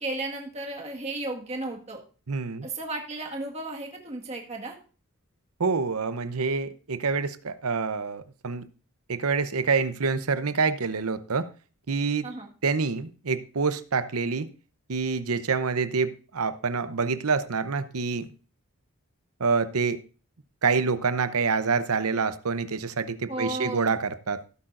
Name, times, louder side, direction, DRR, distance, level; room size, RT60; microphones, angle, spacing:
voice 1, 0.0-2.0 2.6-4.8 12.2-12.5 23.3-24.0, right 2 dB, 30° right, 0 dB, 1.8 m, -34 dB
voice 2, 2.3-2.7 5.6-8.7 9.1-11.5 11.9-12.3 12.6-14.5 14.9-18.3 19.4-20.0 20.6-24.4, right 4 dB, 80° right, 12 dB, 0.8 m, -26 dB
16.5 x 8.8 x 2.6 m, 0.36 s
head